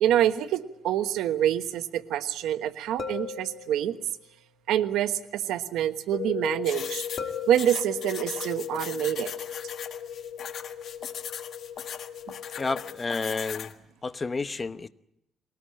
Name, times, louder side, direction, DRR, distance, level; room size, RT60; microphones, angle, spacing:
voice 1, 0.0-4.0 4.7-7.0 7.5-9.3, right 11 dB, 90° right, 11 dB, 1.2 m, -26 dB
sound 1, 3.0-4.1 7.2-8.3, left 6 dB, 40° left, 2.7 m, -38 dB
sound 2, 6.1-13.0, left 8 dB, 75° left, 3.6 m, -37 dB
sound 3, 6.6-13.7, left 8 dB, 55° left, 1.5 m, -39 dB
voice 2, 12.6-13.7 14.0-14.9, left 4 dB, 20° left, 12 dB, 0.9 m, -30 dB
22.0 x 19.0 x 8.6 m, 0.78 s
cardioid pair, 145°, 0 cm